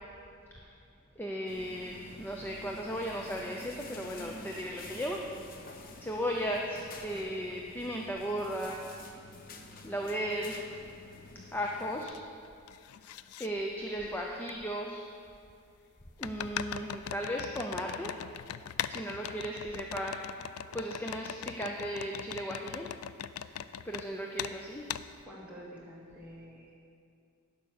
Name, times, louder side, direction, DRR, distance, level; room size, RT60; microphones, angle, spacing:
voice 1, 1.2-5.2 5.5-8.8 9.6-10.6 11.5-12.1 13.4-15.0 16.2-18.1 18.9-20.4 20.7-22.9 23.4-23.6 23.8-24.8, equal, 10° left, 0 dB, 0.5 m, -36 dB
sound 1, 1.5-12.0, left 2 dB, 45° left, 0.7 m, -49 dB
sound 2, 10.7-10.8 11.4-12.2 12.4-13.5 14.5-14.6 16.2-24.1 24.4-24.6 24.9-25.1, left 9 dB, 90° left, 0.3 m, -40 dB
voice 2, 25.3-26.7, equal, 5° right, -7 dB, 2.1 m, -48 dB
11.0 x 5.3 x 6.5 m, 2.4 s
head